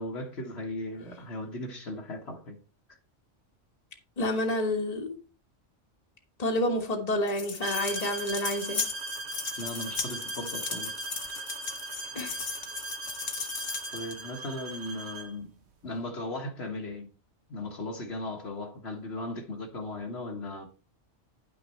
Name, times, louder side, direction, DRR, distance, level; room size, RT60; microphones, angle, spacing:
voice 1, 0.0-2.6 9.6-10.9 13.9-15.5 15.8-17.1 17.5-20.7, left 1 dB, 60° left, 1.7 m, -37 dB
voice 2, 4.2-5.2 6.4-8.8 12.1-12.4, left 1 dB, 30° left, 1.5 m, -29 dB
sound 1, 7.3-14.2, left 5 dB, 80° left, 1.7 m, -36 dB
sound 2, 7.6-15.4, right 3 dB, 60° right, 1.2 m, -39 dB
10.0 x 6.2 x 4.3 m
omnidirectional pair, 1.3 m